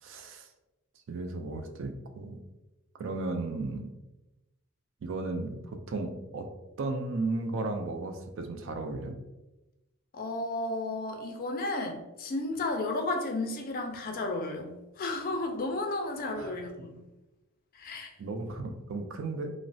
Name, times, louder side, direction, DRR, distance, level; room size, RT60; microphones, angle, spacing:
voice 1, 0.0-0.5 1.1-2.4 3.0-3.9 5.0-6.5 6.8-9.2 16.4-16.6 18.2-19.5, right 3 dB, 60° right, 5 dB, 0.4 m, -35 dB
voice 2, 10.1-17.0 17.7-18.1, left 2 dB, 40° left, 3 dB, 0.4 m, -33 dB
3.0 x 2.0 x 2.6 m, 1.0 s
head